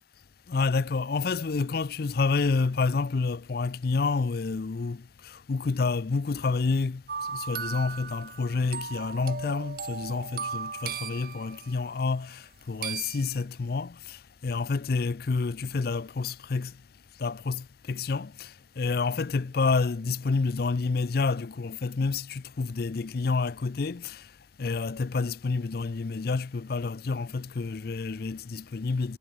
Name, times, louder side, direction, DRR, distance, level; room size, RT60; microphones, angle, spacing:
voice 1, 0.5-7.0 7.3-16.8 17.2-24.3 24.6-29.2, left 4 dB, 50° left, 0.5 m, -29 dB
sound 1, 7.1-11.9 12.8-13.4, right 6 dB, 50° right, 1.4 m, -37 dB
head